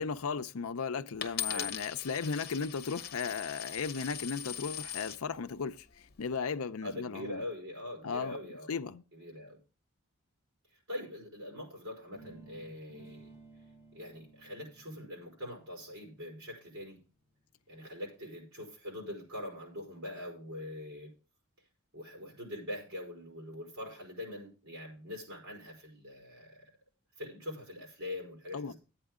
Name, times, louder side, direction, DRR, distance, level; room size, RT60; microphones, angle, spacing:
voice 1, 0.0-7.4 8.0-8.4 8.7-9.0 28.5-28.7, left 5 dB, 70° left, 0.6 m, -36 dB
Coin (dropping), 1.2-5.2 5.9-6.3, left 10 dB, 45° left, 1.0 m, -40 dB
voice 2, 6.8-8.7 9.1-9.6 10.9-13.3 13.9-17.0 17.7-21.1 21.9-26.7 27.2-28.7, left 1 dB, 65° right, 4.9 m, -43 dB
sound 1, 12.1-18.0, right 2 dB, 15° right, 4.8 m, -58 dB
11.5 x 8.9 x 3.6 m
head